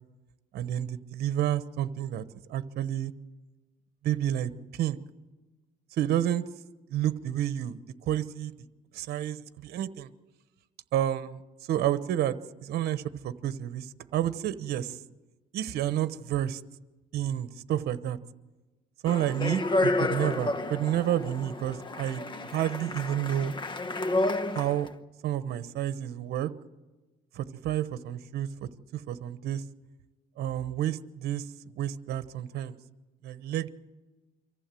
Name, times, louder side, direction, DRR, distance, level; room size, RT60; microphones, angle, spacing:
voice 1, 0.5-2.2 2.5-3.1 4.0-5.0 6.0-6.4 6.9-8.5 8.9-10.1 10.9-11.4 11.7-12.4 12.6-15.0 15.5-16.6 17.1-18.2 19.0-23.5 24.5-24.9 25.2-26.5 27.3-28.5 28.9-29.6 30.4-32.8 33.2-33.7, right 11 dB, 70° right, 13 dB, 1.0 m, -30 dB
Speech, 19.1-24.9, left 2 dB, 30° left, 1.1 m, -30 dB
24.5 x 15.0 x 7.7 m, 1.2 s
cardioid pair, 110°, 17 cm